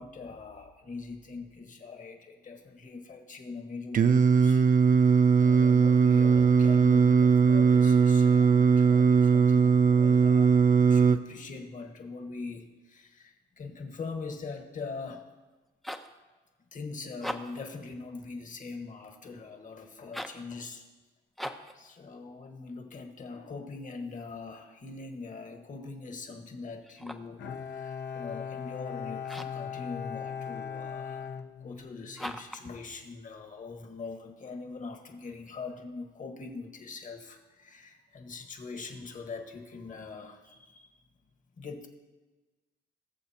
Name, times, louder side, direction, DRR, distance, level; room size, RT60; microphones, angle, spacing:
voice 1, 0.0-4.6 5.4-10.6 10.9-15.3 16.7-20.8 21.7-31.3 31.6-41.0 41.6-41.9, left 4 dB, 40° left, 4 dB, 1.4 m, -42 dB
Singing, 3.9-11.2, right 5 dB, 45° right, 0.5 m, -20 dB
sound 1, 15.5-16.2 17.1-17.7 20.0-20.5 21.3-21.8 26.8-27.4 29.2-29.7 32.1-32.7, equal, ahead, 0.6 m, -40 dB
Bowed string instrument, 27.4-32.3, left 7 dB, 60° left, 0.8 m, -38 dB
19.0 x 7.0 x 2.8 m, 1.2 s
cardioid pair, 90°, 20 cm